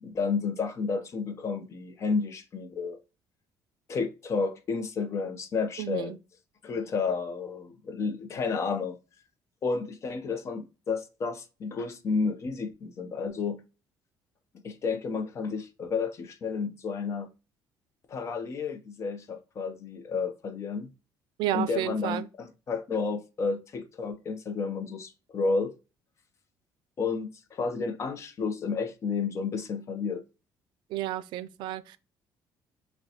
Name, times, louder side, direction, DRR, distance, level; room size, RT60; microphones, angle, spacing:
voice 1, 0.0-3.0 3.9-6.1 6.6-9.0 9.6-13.6 14.6-17.3 18.1-20.9 21.5-25.7 27.0-30.2, left 4 dB, 40° left, 0.6 m, -31 dB
voice 2, 5.8-6.2 21.4-22.3 30.9-32.0, right 13 dB, 80° right, 0.4 m, -31 dB
6.3 x 2.2 x 2.8 m
cardioid pair, 145°, 8 cm